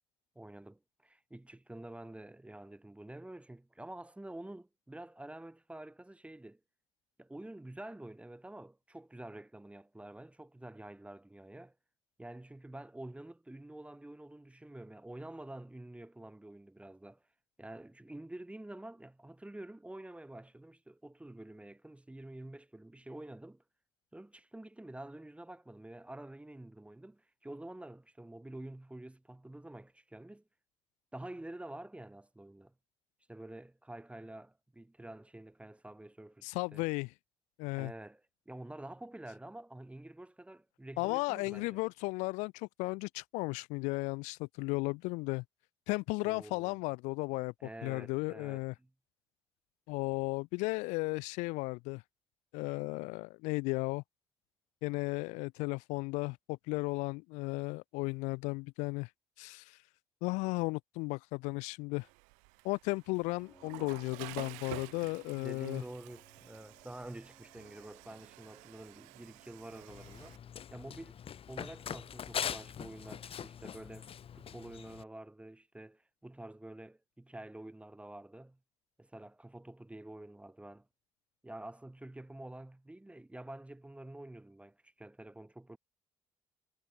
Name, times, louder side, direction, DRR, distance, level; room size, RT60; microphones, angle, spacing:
voice 1, 0.4-6.6 7.2-11.7 12.2-17.2 17.6-23.6 24.1-30.4 31.1-32.7 33.3-36.8 37.8-38.2 38.5-41.8 46.2-46.8 47.6-48.9 65.3-70.4 70.7-71.2 71.5-74.1 74.3-78.6 79.0-80.9 81.4-85.8, right 1 dB, 10° right, 0.8 m, -48 dB
voice 2, 36.4-37.1 37.6-37.9 41.0-45.4 45.9-48.7 49.9-52.0 52.5-54.0 54.8-59.1 59.4-59.8 60.2-62.1 62.6-65.8, left 26 dB, 75° left, 0.5 m, -35 dB
Water / Toilet flush, 62.0-70.4, right 34 dB, 75° right, 1.4 m, -51 dB
Piano, 63.3-69.7, left 2 dB, 15° left, 2.9 m, -64 dB
Run, 69.9-75.0, left 8 dB, 50° left, 0.9 m, -42 dB
hypercardioid pair, 45°, 13 cm